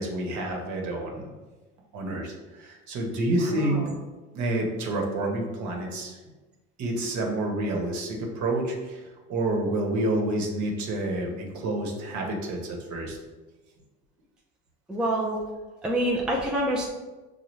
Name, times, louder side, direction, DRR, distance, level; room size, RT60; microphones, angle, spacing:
voice 1, 0.0-1.3 1.9-3.9 4.3-6.2 6.8-13.2, right 1 dB, 50° right, 0 dB, 1.2 m, -29 dB
voice 2, 3.5-4.0 14.9-15.4 15.8-16.9, right 1 dB, ahead, -2 dB, 0.5 m, -27 dB
5.9 x 2.3 x 3.1 m, 1.2 s
supercardioid pair, 105°, 37 cm